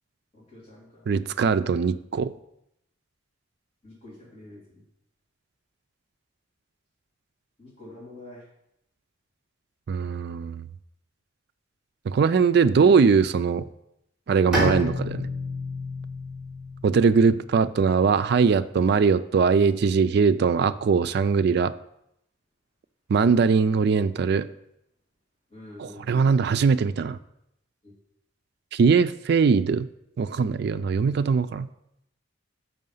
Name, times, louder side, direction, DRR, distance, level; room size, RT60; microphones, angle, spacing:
voice 1, 0.3-1.2 3.8-4.8 7.6-8.4 16.9-17.4 25.5-26.3 27.8-27.9, left 1 dB, 30° left, -7 dB, 2.3 m, -46 dB
voice 2, 1.1-2.3 9.9-10.7 12.1-13.7 14.3-15.3 16.8-21.7 23.1-24.5 25.8-27.2 28.7-29.9 30.2-31.7, right 5 dB, 55° right, 13 dB, 0.3 m, -21 dB
Bowed string instrument, 14.5-18.1, left 1 dB, 5° right, 2.6 m, -30 dB
6.5 x 5.5 x 5.4 m, 0.79 s
head